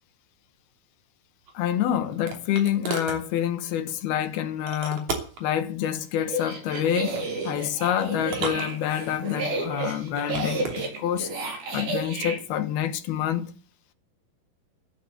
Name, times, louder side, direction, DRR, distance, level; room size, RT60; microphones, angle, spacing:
sound 1, 1.5-3.2 4.7-5.5 6.8-7.3 8.2-9.2 10.1-10.8, right 4 dB, 50° right, 4.0 m, -35 dB
voice 1, 1.6-5.0 5.4-7.2 7.5-10.7 11.0-11.3 11.7-13.5, left 10 dB, 75° left, 3.1 m, -27 dB
sound 2, 6.2-12.4, right 3 dB, 65° right, 6.1 m, -32 dB
15.0 x 8.5 x 8.1 m
omnidirectional pair, 4.6 m